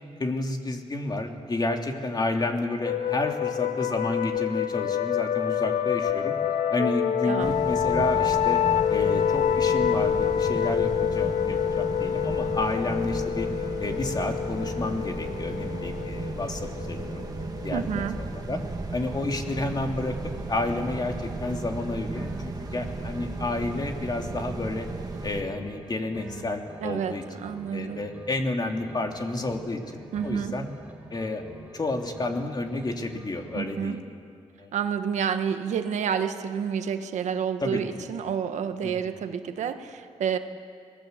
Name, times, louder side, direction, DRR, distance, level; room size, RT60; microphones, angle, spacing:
voice 1, 0.2-6.4 6.7-8.6 8.9-13.5 13.8-17.2 17.6-18.6 18.9-20.2 20.5-24.9 25.2-30.7 31.1-31.4 31.7-34.0 34.6-34.7 37.6-38.1 38.8-39.1, left 2 dB, 35° left, 3 dB, 3.0 m, -30 dB
sound 1, 2.9-18.2, left 9 dB, 80° left, 1.0 m, -27 dB
voice 2, 7.2-7.6 17.7-18.2 26.8-28.1 30.1-30.5 33.5-34.0 34.7-40.4, right 7 dB, 80° right, 8 dB, 1.4 m, -29 dB
sound 2, 7.4-25.4, right 3 dB, 35° right, 2.2 m, -35 dB
sound 3, 18.8-20.4 20.7-24.4 24.7-28.4 28.7-32.4 32.7-34.1, right 2 dB, 15° right, 4.5 m, -46 dB
26.0 x 19.5 x 8.2 m, 2.3 s
cardioid pair, 80°, 12 cm